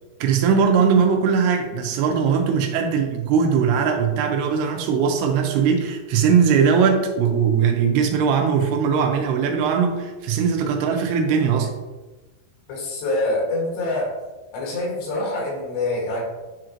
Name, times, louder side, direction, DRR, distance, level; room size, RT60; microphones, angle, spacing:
voice 1, 0.2-11.7, right 6 dB, 85° right, 4 dB, 2.7 m, -20 dB
voice 2, 12.7-14.2 14.5-16.2, left 2 dB, 90° left, -4 dB, 4.1 m, -25 dB
9.4 x 3.8 x 3.0 m, 1.2 s
omnidirectional pair, 4.7 m